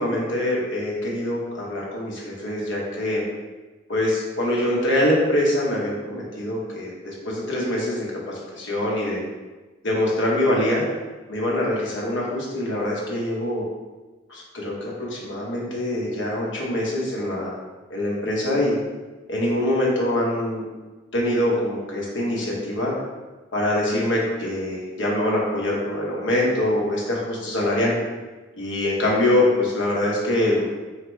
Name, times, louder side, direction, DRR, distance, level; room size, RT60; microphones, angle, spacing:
voice 1, 0.0-3.2 3.9-9.2 9.8-10.8 11.3-13.6 14.3-17.6 17.9-18.7 19.3-20.6 21.1-22.9 23.5-27.9 28.6-30.6, left 1 dB, 70° left, -3 dB, 1.0 m, -24 dB
4.0 x 2.9 x 3.2 m, 1.2 s
head